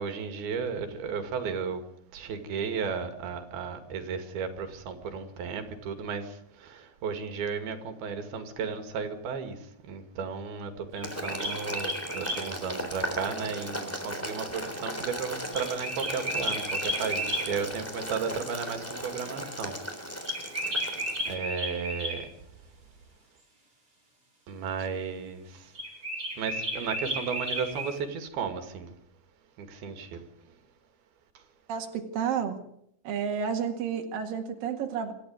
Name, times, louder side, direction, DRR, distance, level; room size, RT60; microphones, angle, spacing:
voice 1, 0.0-1.8 2.1-9.6 9.8-19.8 21.3-22.3 24.5-25.7 26.4-28.9 29.6-30.2, right 6 dB, 90° right, 4.1 m, -34 dB
Boiling, 11.0-21.3, equal, 5° left, 3.2 m, -37 dB
sound 1, 11.0-12.4 15.5-17.5 20.2-22.2 25.7-27.9, equal, 25° right, 7.7 m, -32 dB
voice 2, 31.7-32.6 33.1-35.1, right 7 dB, 70° right, 3.7 m, -31 dB
26.5 x 13.5 x 9.4 m
omnidirectional pair, 4.2 m